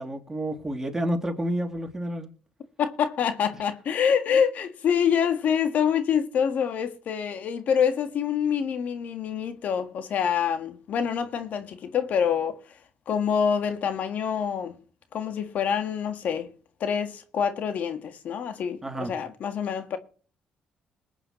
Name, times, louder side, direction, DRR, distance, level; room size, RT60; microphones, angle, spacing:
voice 1, 0.0-2.3 18.8-19.1, right 1 dB, 15° right, 2.9 m, -30 dB
voice 2, 2.8-12.8 13.1-14.8 15.1-16.5 16.8-20.0, left 7 dB, 65° left, 1.6 m, -26 dB
20.5 x 9.0 x 3.1 m
cardioid pair, 85°, 3 cm